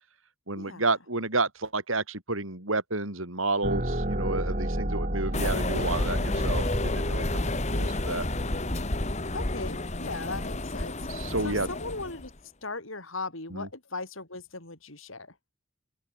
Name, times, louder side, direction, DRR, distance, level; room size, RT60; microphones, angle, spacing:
voice 1, 0.5-8.3 11.1-11.7 13.5-13.7, right 3 dB, 80° right, 6.1 m, -31 dB
sound 1, 3.6-8.9, right 1 dB, 40° right, 4.2 m, -32 dB
sound 2, 5.3-12.3, left 2 dB, 35° left, 1.7 m, -30 dB
voice 2, 9.3-12.3 12.6-15.3, left 3 dB, 80° left, 6.4 m, -38 dB
open air
head